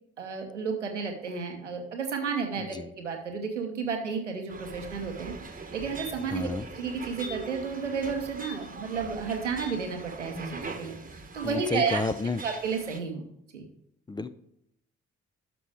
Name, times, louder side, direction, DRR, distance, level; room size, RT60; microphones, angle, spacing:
voice 1, 0.2-6.5 6.7-12.0 12.4-13.2 13.5-13.7, right 5 dB, 90° right, 3 dB, 0.9 m, -32 dB
voice 2, 2.6-2.9 6.2-6.7 11.4-12.4 14.1-14.3, left 3 dB, 15° left, 13 dB, 0.4 m, -31 dB
sound 1, 4.5-13.0, right 3 dB, 25° right, 1.2 m, -42 dB
11.0 x 6.0 x 3.4 m, 0.76 s
figure-of-eight pair, 40°, 35 cm